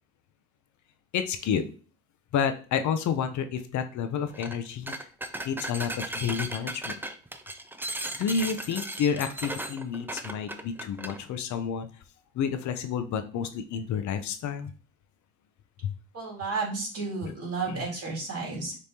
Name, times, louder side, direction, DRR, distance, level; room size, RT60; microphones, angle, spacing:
voice 1, 1.1-1.6 2.3-4.9 5.4-7.0 8.2-11.9 12.3-14.7 15.8-15.9 17.2-17.3 17.7-17.9, left 7 dB, 70° left, 9 dB, 0.6 m, -30 dB
sound 1, 4.3-4.6 4.9-11.2, right 1 dB, 5° right, 0.4 m, -36 dB
voice 2, 16.1-18.8, right 4 dB, 50° right, -3 dB, 2.4 m, -32 dB
5.2 x 3.1 x 2.8 m, 0.38 s
cardioid pair, 90°, 30 cm